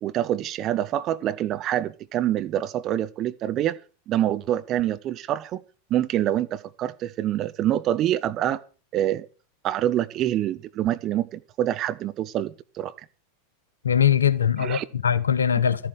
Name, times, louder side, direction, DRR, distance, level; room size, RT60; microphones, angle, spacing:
voice 1, 0.0-3.8 4.1-5.6 5.9-8.6 8.9-9.3 9.6-12.9 14.6-14.8, right 12 dB, 35° right, 1.2 m, -26 dB
voice 2, 13.8-15.9, left 8 dB, 75° left, 1.1 m, -21 dB
13.5 x 10.5 x 6.5 m
figure-of-eight pair, 85°, 0 cm